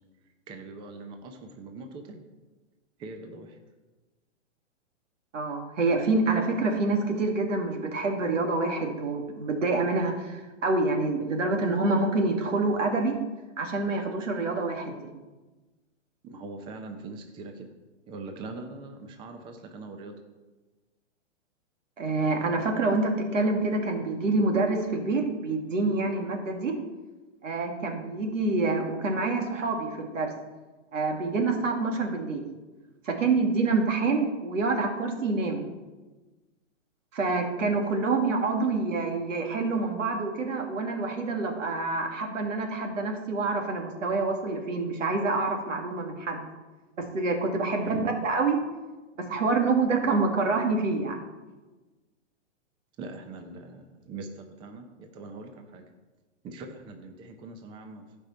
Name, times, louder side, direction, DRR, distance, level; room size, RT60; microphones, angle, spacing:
voice 1, 0.5-2.2 3.0-3.5 16.2-17.7 18.1-20.1 47.8-48.1 53.0-55.9 56.4-58.0, right 3 dB, 15° right, 5 dB, 0.6 m, -42 dB
voice 2, 5.3-13.2 13.6-15.1 22.0-26.8 27.4-30.3 30.9-32.5 33.0-35.7 37.1-46.4 47.0-48.6 49.3-51.2, right 3 dB, 90° right, 2 dB, 2.2 m, -27 dB
15.5 x 5.3 x 4.3 m, 1.2 s
hypercardioid pair, 150°, 37 cm